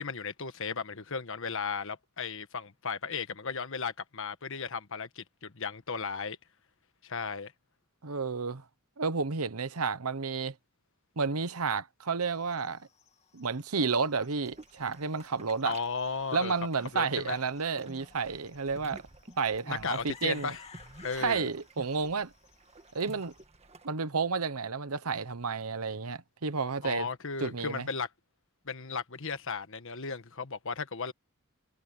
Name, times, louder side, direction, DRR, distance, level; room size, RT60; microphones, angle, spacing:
voice 1, 0.0-6.4 7.0-7.5 15.6-16.5 16.9-17.4 19.7-20.6 21.0-21.5 26.8-28.1 28.6-31.1, left 5 dB, 60° left, 1.4 m, -35 dB
voice 2, 8.0-8.6 9.0-10.5 11.2-12.8 13.3-15.8 16.3-19.0 19.4-20.5 21.1-22.3 22.9-23.3 23.8-27.1 27.4-27.9, right 4 dB, 80° right, 1.0 m, -31 dB
sound 1, 12.2-23.4, left 5 dB, 30° left, 2.7 m, -58 dB
sound 2, 14.4-23.9, right 2 dB, 30° right, 1.6 m, -52 dB
head